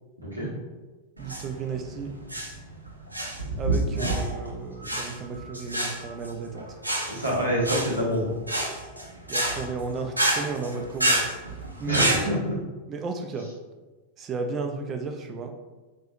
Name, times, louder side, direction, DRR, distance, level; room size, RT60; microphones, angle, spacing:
voice 1, 1.2-2.1 3.6-6.8 9.3-11.3 11.8-12.4 12.9-13.5 14.2-15.5, right 4 dB, 30° right, 4 dB, 0.4 m, -33 dB
sound 1, 1.2-12.2, right 1 dB, 85° right, 0.5 m, -28 dB
voice 2, 7.1-8.3 11.8-12.6, equal, 90° left, -7 dB, 1.1 m, -26 dB
4.0 x 2.7 x 2.5 m, 1.2 s
figure-of-eight pair, 90°, 0 cm